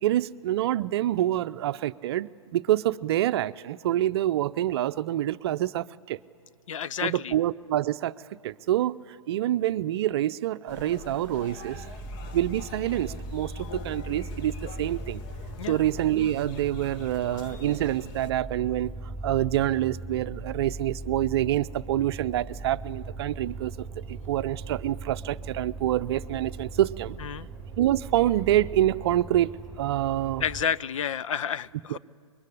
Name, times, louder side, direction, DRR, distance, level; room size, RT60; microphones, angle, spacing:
voice 1, 0.0-6.2 7.0-8.1 8.4-9.0 9.3-11.9 12.3-15.2 15.7-19.0 19.2-23.7 24.1-27.2 27.8-30.4 31.9-32.0, right 13 dB, 45° right, 13 dB, 0.6 m, -26 dB
voice 2, 6.7-7.3 15.6-15.8 27.2-27.5 30.4-32.0, left 8 dB, 65° left, 18 dB, 0.6 m, -30 dB
sound 1, 10.7-18.3, left 5 dB, 35° left, 1.3 m, -43 dB
sound 2, 11.7-30.7, right 2 dB, 5° left, 3.2 m, -39 dB
25.5 x 22.5 x 10.0 m, 2.1 s
hypercardioid pair, 130°, 18 cm